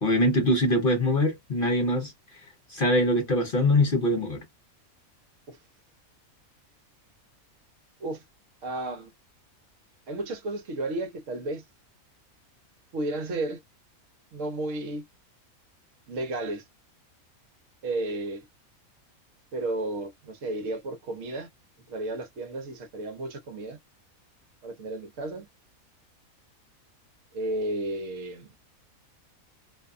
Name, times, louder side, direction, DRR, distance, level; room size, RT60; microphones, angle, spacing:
voice 1, 0.0-2.1 2.7-4.4, left 1 dB, 45° left, 0.8 m, -23 dB
voice 2, 8.6-9.1 10.1-11.6 12.9-13.6 14.3-15.0 16.1-16.7 17.8-18.5 19.5-21.5 21.9-23.8 24.6-25.5 27.3-28.5, right 2 dB, 65° right, 1.0 m, -33 dB
2.6 x 2.2 x 2.3 m
omnidirectional pair, 1.5 m